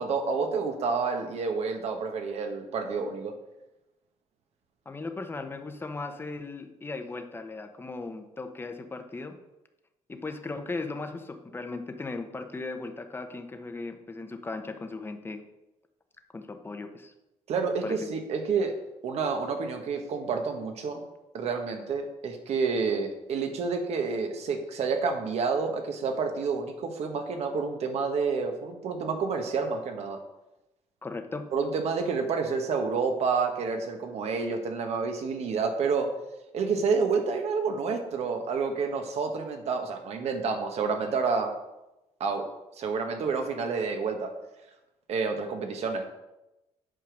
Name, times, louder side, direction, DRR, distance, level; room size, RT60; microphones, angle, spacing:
voice 1, 0.0-3.4 17.5-18.7 19.0-21.0 21.3-30.2 31.5-36.1 36.5-41.5 42.2-42.4 42.8-44.3 45.1-46.0, right 5 dB, 65° right, 5 dB, 1.5 m, -29 dB
voice 2, 4.8-9.4 10.1-15.4 16.3-17.1 17.8-18.1 31.0-31.5, left 3 dB, 20° left, 7 dB, 1.0 m, -37 dB
8.7 x 5.0 x 6.4 m, 0.95 s
cardioid pair, 115°, 12 cm